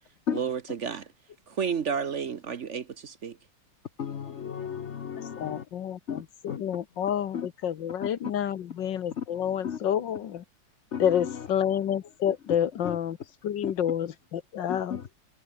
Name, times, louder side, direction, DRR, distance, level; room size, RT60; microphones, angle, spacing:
voice 1, 0.3-1.1 1.5-3.4, right 6 dB, 50° right, 1.0 m, -31 dB
voice 2, 4.0-5.6 6.1-6.2 6.5-6.6 7.3-7.5 9.2-9.3 9.6-9.8 10.9-11.5 12.8-13.0 13.6-13.7 14.7-15.1, left 8 dB, 45° left, 1.1 m, -34 dB
voice 3, 5.2-10.4 11.0-13.2 13.4-15.0, left 9 dB, 70° left, 1.8 m, -29 dB
omnidirectional pair, 2.0 m